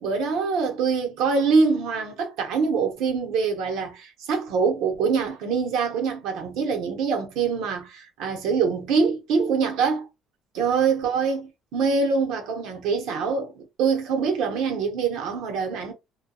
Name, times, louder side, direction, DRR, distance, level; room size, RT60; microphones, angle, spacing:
voice 1, 0.0-10.1 10.5-15.9, right 5 dB, 80° right, 0.8 m, -24 dB
2.3 x 2.2 x 2.7 m
cardioid pair, 135°, 0 cm